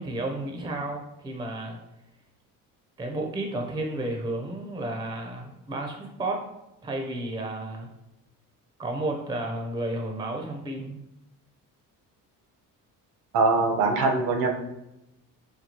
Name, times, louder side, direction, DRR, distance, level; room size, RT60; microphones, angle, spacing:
voice 1, 0.0-1.8 3.0-6.4 6.8-7.9 8.8-11.0, right 2 dB, 15° right, 2 dB, 0.5 m, -32 dB
voice 2, 13.3-14.5, right 3 dB, 75° right, 2 dB, 0.8 m, -22 dB
4.3 x 2.3 x 2.8 m, 0.89 s
cardioid pair, 120°, 34 cm